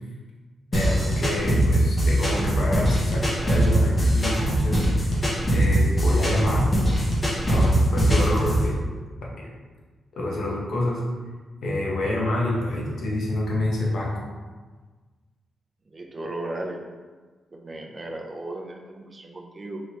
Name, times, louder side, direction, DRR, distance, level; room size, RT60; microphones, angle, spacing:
voice 1, 0.7-5.2 5.5-6.7 7.5-8.8 9.2-9.5 10.2-11.0 11.6-14.2, left 1 dB, 70° left, -3 dB, 0.8 m, -28 dB
sound 1, 0.7-8.7, right 1 dB, 20° left, 0.7 m, -21 dB
voice 2, 15.9-16.8 17.5-19.8, right 2 dB, 25° right, 2 dB, 0.4 m, -35 dB
3.2 x 2.9 x 2.8 m, 1.3 s
wide cardioid pair, 150°, 0 cm